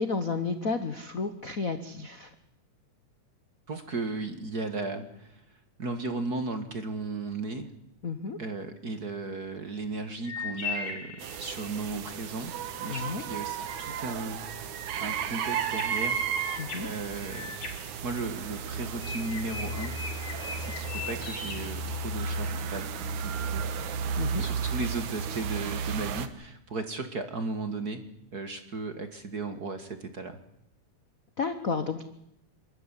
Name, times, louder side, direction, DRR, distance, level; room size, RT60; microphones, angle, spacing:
voice 1, 0.0-2.3 8.0-8.4 12.9-13.2 16.6-16.9 24.2-24.5 31.4-32.0, left 4 dB, 65° left, 9 dB, 0.8 m, -31 dB
voice 2, 3.7-5.4 5.8-7.7 8.4-11.1 11.4-12.5 12.8-14.4 14.9-16.2 16.8-17.5 18.0-20.0 20.6-23.7 24.4-28.0 28.3-30.4, right 3 dB, 35° right, 8 dB, 1.8 m, -35 dB
sound 1, 10.2-12.0 15.4-18.6 19.0-22.5, left 5 dB, 90° left, 5.4 m, -40 dB
sound 2, 11.2-26.3, right 6 dB, 70° right, 2.7 m, -33 dB
27.0 x 13.5 x 10.0 m, 0.80 s
omnidirectional pair, 3.6 m